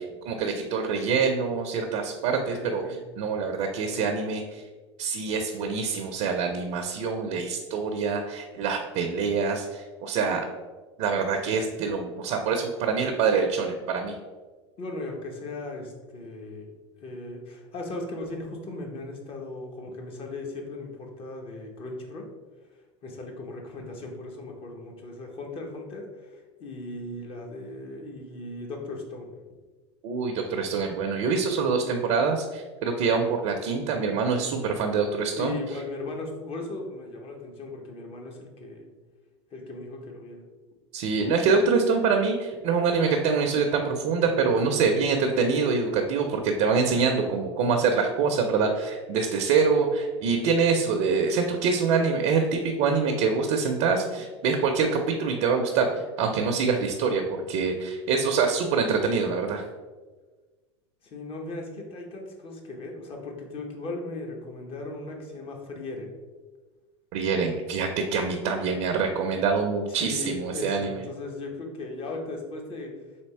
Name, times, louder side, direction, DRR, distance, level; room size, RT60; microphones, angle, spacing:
voice 1, 0.0-4.6 5.0-10.4 11.0-14.2 30.0-35.8 40.9-59.6 67.1-71.0, right 5 dB, 60° right, 4 dB, 0.5 m, -25 dB
voice 2, 2.5-3.0 14.8-16.7 17.0-22.3 23.0-29.3 35.4-38.9 39.5-40.4 45.1-45.5 61.0-66.1 69.9-72.9, left 2 dB, 40° left, 1 dB, 1.0 m, -37 dB
3.5 x 2.8 x 4.3 m, 1.3 s
hypercardioid pair, 95°, 15 cm